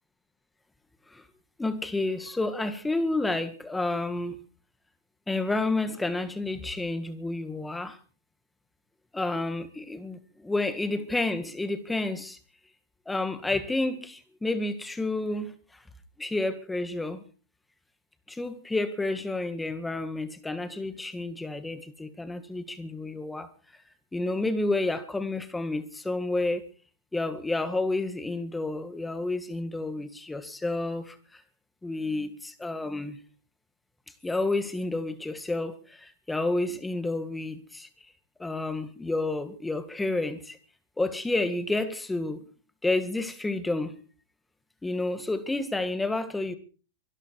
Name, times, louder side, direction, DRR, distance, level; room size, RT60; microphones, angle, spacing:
voice 1, 1.6-4.4 5.3-8.0 9.1-12.4 13.1-15.5 16.2-17.2 18.3-23.5 24.1-26.6 27.1-31.4 31.8-33.2 34.2-37.9 38.4-40.6 41.0-42.4 42.8-44.0 44.8-46.5, left 2 dB, 5° left, 1.8 m, -30 dB
24.0 x 12.0 x 4.7 m
hypercardioid pair, 145°, 0 cm